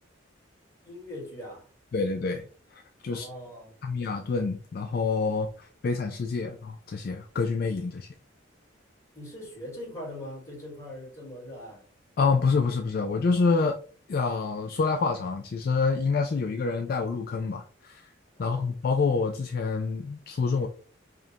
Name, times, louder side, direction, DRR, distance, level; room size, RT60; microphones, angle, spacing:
voice 1, 0.8-1.7 3.1-3.7 9.1-11.8 18.4-18.7, left 1 dB, 15° left, 1.7 m, -41 dB
voice 2, 1.9-2.5 2.7-3.3 3.8-8.1 12.2-13.8 14.1-18.1 18.4-20.7, left 4 dB, 50° left, 0.3 m, -27 dB
5.0 x 2.2 x 2.8 m
head